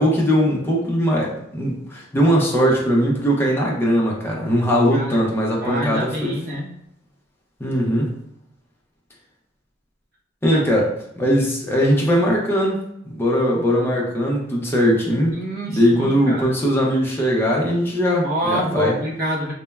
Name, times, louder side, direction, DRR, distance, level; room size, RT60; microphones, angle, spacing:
voice 1, 0.0-6.3 7.6-8.1 10.4-10.9 11.2-12.8 13.1-15.3 15.7-18.9, equal, 15° left, -3 dB, 0.5 m, -20 dB
voice 2, 4.9-5.3 5.6-6.7 10.5-10.6 15.3-16.5 18.2-19.5, equal, 55° right, -4 dB, 0.9 m, -26 dB
3.1 x 2.1 x 2.3 m, 0.75 s
head